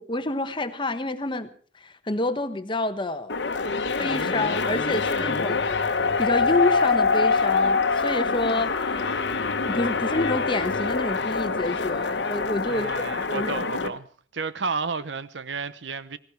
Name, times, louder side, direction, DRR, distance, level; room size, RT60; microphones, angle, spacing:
voice 1, 0.0-1.5 1.8-3.4 4.0-9.2 9.7-13.9, left 2 dB, 25° left, 1.1 m, -28 dB
sound 1, 3.3-13.9, left 4 dB, 70° left, 1.2 m, -25 dB
voice 2, 12.7-14.1 14.3-16.2, right 4 dB, 75° right, 0.9 m, -31 dB
17.0 x 17.0 x 4.6 m
head